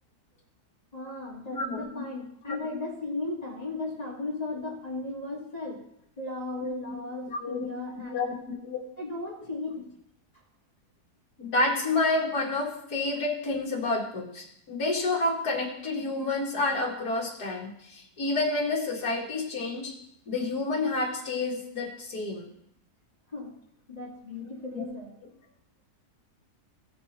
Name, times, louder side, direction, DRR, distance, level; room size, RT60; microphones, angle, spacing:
voice 1, 0.9-5.8 6.2-8.3 9.0-9.9 23.3-23.6 23.9-25.2, left 2 dB, 25° left, -4 dB, 2.4 m, -36 dB
voice 2, 1.5-1.8 2.5-2.6 6.9-7.0 7.3-7.7 8.1-8.8 11.4-19.9 20.3-22.5 24.8-24.9, left 2 dB, 65° left, -1 dB, 2.4 m, -29 dB
16.0 x 6.0 x 4.3 m, 0.75 s
omnidirectional pair, 1.8 m